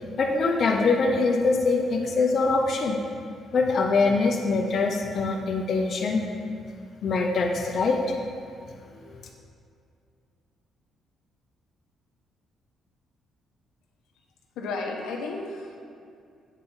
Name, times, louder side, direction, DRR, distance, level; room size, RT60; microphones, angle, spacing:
voice 1, 0.2-3.0 3.5-6.2 7.0-8.0 8.9-9.2, left 3 dB, 55° left, 1 dB, 0.8 m, -23 dB
voice 2, 14.6-15.8, left 3 dB, 90° left, 1 dB, 1.0 m, -33 dB
8.4 x 4.6 x 5.5 m, 2.4 s
cardioid pair, 90°, 0 cm